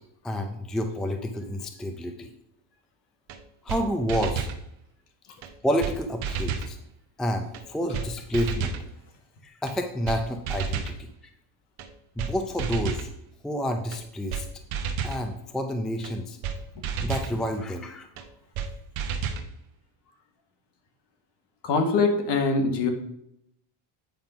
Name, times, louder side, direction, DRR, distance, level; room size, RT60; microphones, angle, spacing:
voice 1, 0.2-2.3 3.6-4.5 5.6-6.8 7.2-8.8 9.4-11.1 12.2-13.1 13.4-14.5 15.0-16.4 17.0-18.0, equal, ahead, 5 dB, 0.5 m, -29 dB
sound 1, 3.3-3.4 3.7-3.8 4.1-4.6 5.4-5.5 5.8-6.0 6.2-6.7 7.5-7.6 7.9-8.1 8.3-8.8 9.7-9.8 10.1-10.2 10.5-11.0 11.8-11.9 12.2-12.3 12.6-13.1 13.9-14.0 14.3-14.4 14.7-15.2 16.0-16.1 16.4-16.6 16.8-17.3 18.2-18.3 18.6-18.7 19.0-19.5, right 7 dB, 70° right, 1.1 m, -30 dB
voice 2, 21.6-22.9, left 3 dB, 55° left, 4 dB, 1.7 m, -23 dB
8.8 x 3.9 x 5.6 m, 0.76 s
cardioid pair, 130°, 50 cm